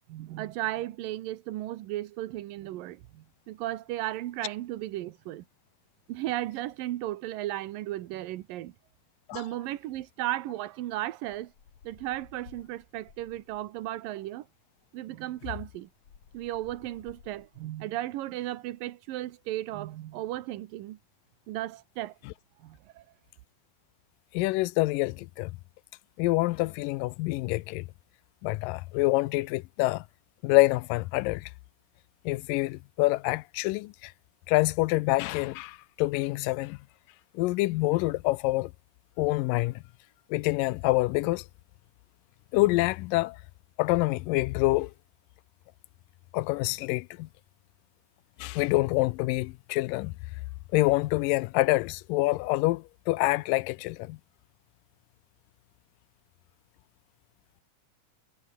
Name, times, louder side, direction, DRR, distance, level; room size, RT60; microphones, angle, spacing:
voice 1, 0.1-5.4 6.1-8.7 9.3-11.5 11.8-14.5 14.9-15.9 16.3-21.0 21.5-22.2 22.6-23.1, right 15 dB, 85° right, 2.8 m, -35 dB
sound 1, 11.2-13.8 14.8-14.9 15.2-17.8, left 7 dB, 55° left, 3.9 m, -56 dB
voice 2, 24.3-25.5 26.2-27.9 28.4-30.0 30.4-31.5 32.3-34.1 34.5-36.8 37.3-38.7 39.2-39.8 40.3-41.5 42.5-43.4 43.8-44.9 46.3-47.3 48.4-50.1 50.7-54.2, left 20 dB, 85° left, 2.3 m, -26 dB
omnidirectional pair, 3.9 m